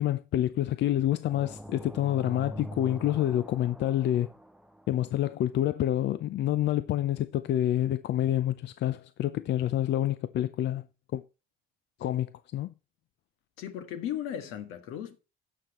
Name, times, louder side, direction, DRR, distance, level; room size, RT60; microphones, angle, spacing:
voice 1, 0.0-4.3 4.9-10.8 11.1-11.2 12.0-12.3 12.5-12.7, left 12 dB, 55° left, 0.5 m, -27 dB
sound 1, 1.3-5.1, equal, ahead, 0.6 m, -43 dB
voice 2, 13.6-15.2, left 10 dB, 80° left, 1.8 m, -36 dB
17.5 x 6.0 x 3.0 m
cardioid pair, 105°, 21 cm